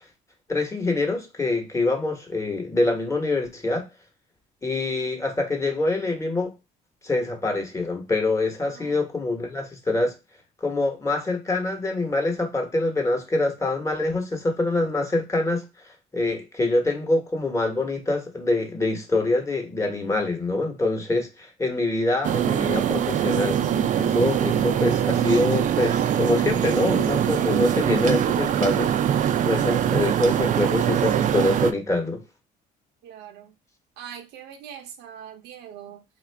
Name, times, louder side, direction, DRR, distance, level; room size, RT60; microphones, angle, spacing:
voice 1, 0.5-3.8 4.6-6.5 7.0-10.1 10.6-15.6 16.1-23.6 24.0-28.9 29.4-32.2, left 2 dB, 15° left, 1.0 m, -25 dB
voice 2, 8.6-9.0 33.0-33.5 34.0-36.0, right 9 dB, 85° right, 0.7 m, -42 dB
sound 1, 22.2-31.7, right 10 dB, 50° right, 0.4 m, -23 dB
3.5 x 2.4 x 3.3 m
cardioid pair, 110°, 17 cm